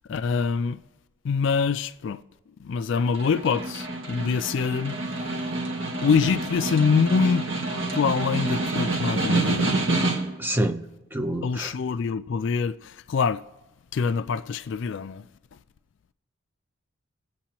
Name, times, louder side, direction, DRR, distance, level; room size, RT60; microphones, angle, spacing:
voice 1, 0.1-0.8 1.2-2.2 2.6-5.0 6.0-7.5 7.9-9.8 11.4-13.4 13.9-15.3, left 5 dB, 55° left, 0.3 m, -25 dB
Snare drum, 3.0-10.5, right 2 dB, 60° right, 2.0 m, -27 dB
voice 2, 10.4-11.7, right 1 dB, 10° right, 0.5 m, -28 dB
22.5 x 8.2 x 2.9 m
head